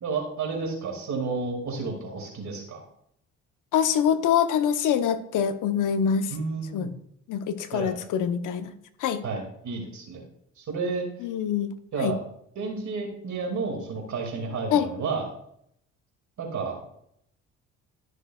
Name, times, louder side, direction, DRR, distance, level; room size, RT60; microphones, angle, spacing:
voice 1, 0.0-2.8 6.3-6.9 7.7-7.9 9.2-10.3 10.6-11.1 11.9-12.2 12.6-15.3 16.4-16.8, right 4 dB, 55° right, 2 dB, 2.3 m, -31 dB
voice 2, 3.7-6.3 6.7-6.9 7.3-8.7 9.0-9.2 11.2-11.7 12.0-12.1 14.7-14.9, left 8 dB, 65° left, 10 dB, 0.9 m, -24 dB
12.5 x 6.2 x 2.3 m, 0.71 s
hypercardioid pair, 60°, 34 cm